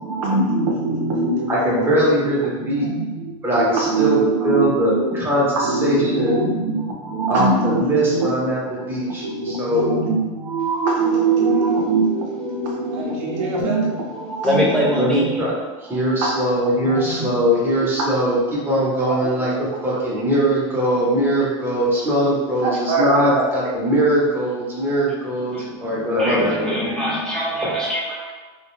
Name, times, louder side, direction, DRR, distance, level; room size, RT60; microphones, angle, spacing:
voice 1, 0.0-2.3 2.6-8.3 8.8-8.9 9.2-14.6 15.3-15.4 15.9-16.5 16.8-17.4 19.1-19.2 22.6-23.4, right 3 dB, 80° right, 0 dB, 0.6 m, -23 dB
voice 2, 1.5-2.9 3.4-4.2 4.4-6.4 7.3-9.8 15.0-15.5 15.8-18.4 18.7-26.8, right 1 dB, 15° right, -6 dB, 0.9 m, -21 dB
voice 3, 14.4-15.3 25.3-28.3, equal, 5° left, -6 dB, 0.4 m, -24 dB
2.3 x 2.2 x 3.1 m, 1.3 s
supercardioid pair, 115°, 16 cm